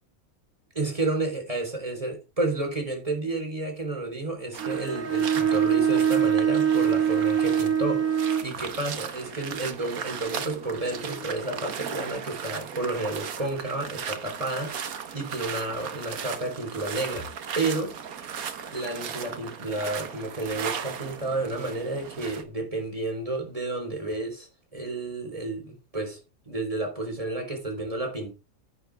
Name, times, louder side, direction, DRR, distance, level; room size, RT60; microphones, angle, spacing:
voice 1, 0.7-17.3 17.6-17.9 18.7-26.2 26.5-28.3, right 2 dB, 25° right, 4.0 m, -31 dB
sound 1, 4.5-22.4, right 7 dB, 85° right, 1.6 m, -37 dB
Bowed string instrument, 4.6-8.5, right 8 dB, 65° right, 2.2 m, -23 dB
10.5 x 9.1 x 3.5 m
omnidirectional pair, 1.5 m